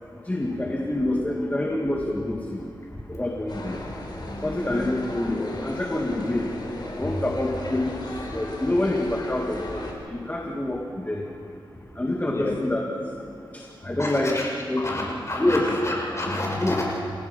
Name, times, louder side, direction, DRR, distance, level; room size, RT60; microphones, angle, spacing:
voice 1, 0.3-2.6 3.1-3.8 4.4-6.5 7.0-11.2 12.0-12.8 13.5-14.3 14.7-14.8 15.4-15.7 16.6-16.8, left 1 dB, 20° left, -1 dB, 2.2 m, -26 dB
sound 1, 3.5-9.9, left 1 dB, 60° left, 4.6 m, -37 dB
voice 2, 4.2-4.9 7.0-7.1 12.2-12.6 14.0-14.5 14.8-17.0, left 1 dB, 35° left, -3 dB, 7.1 m, -30 dB
30.0 x 16.5 x 5.8 m, 2.7 s
wide cardioid pair, 90°, 9 cm